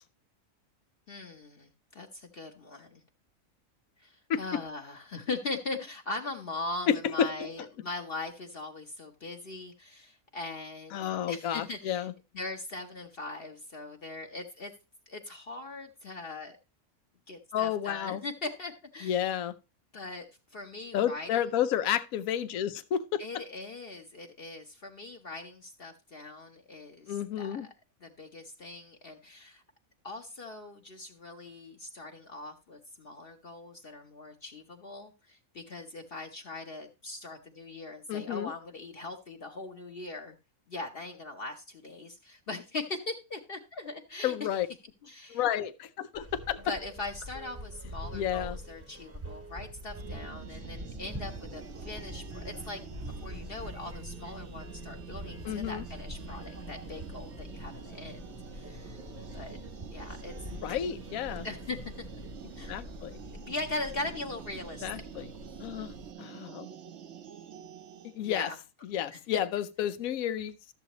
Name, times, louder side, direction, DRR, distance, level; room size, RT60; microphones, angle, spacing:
voice 1, 1.1-3.0 4.0-12.1 12.3-14.7 15.1-16.6 17.3-19.4 19.9-21.4 23.2-27.7 28.0-29.6 30.0-40.4 40.7-44.5 45.0-45.4 46.6-52.8 53.2-59.0 59.3-59.6 59.9-60.3 61.4-62.2 62.6-62.8 63.3-65.2 68.2-68.6 69.1-69.2, left 2 dB, 50° left, 1.0 m, -40 dB
voice 2, 6.9-7.5 10.9-12.1 17.5-18.2 19.0-19.5 20.9-23.4 27.1-27.7 38.1-38.5 44.2-44.7 45.3-46.7 48.1-48.6 55.4-55.8 60.6-61.5 62.7-63.2 64.8-65.3 65.6-66.7 68.0-68.5 68.9-70.6, left 9 dB, 80° left, 1.1 m, -31 dB
sound 1, 46.1-63.5, equal, 10° right, 0.8 m, -45 dB
sound 2, 49.9-68.2, right 9 dB, 60° right, 1.0 m, -47 dB
Buzz, 51.1-66.1, left 3 dB, 20° left, 0.7 m, -48 dB
13.0 x 7.4 x 3.0 m
omnidirectional pair, 1.4 m